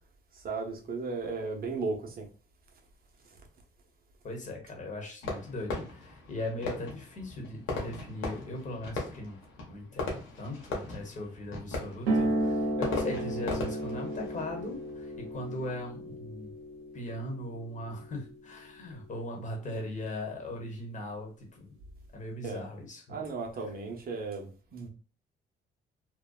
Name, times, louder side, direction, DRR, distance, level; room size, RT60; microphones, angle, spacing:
voice 1, 0.3-2.3 3.3-3.4 22.4-22.6 23.1-24.9, right 4 dB, 50° right, 0.7 m, -35 dB
voice 2, 4.2-9.4 9.7-16.5 16.9-21.7 22.1-23.2, left 1 dB, 40° left, 1.0 m, -39 dB
Fireworks, 5.2-15.8, left 3 dB, 90° left, 0.9 m, -39 dB
sound 1, 12.1-19.2, right 1 dB, 90° right, 0.7 m, -34 dB
2.6 x 2.1 x 2.3 m
cardioid pair, 90°, 20 cm